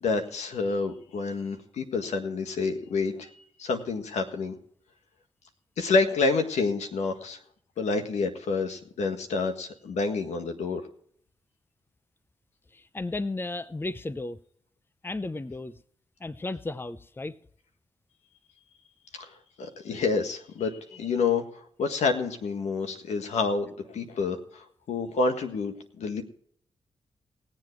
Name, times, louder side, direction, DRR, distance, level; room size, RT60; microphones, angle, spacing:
voice 1, 0.0-4.6 5.8-7.4 7.8-10.8 19.2-19.3 19.6-21.4 21.8-26.2, left 4 dB, 80° left, 1.6 m, -28 dB
voice 2, 12.7-14.4 15.0-15.8 16.2-17.4, left 2 dB, 20° left, 0.7 m, -34 dB
19.5 x 7.7 x 4.6 m
supercardioid pair, 45°, 11 cm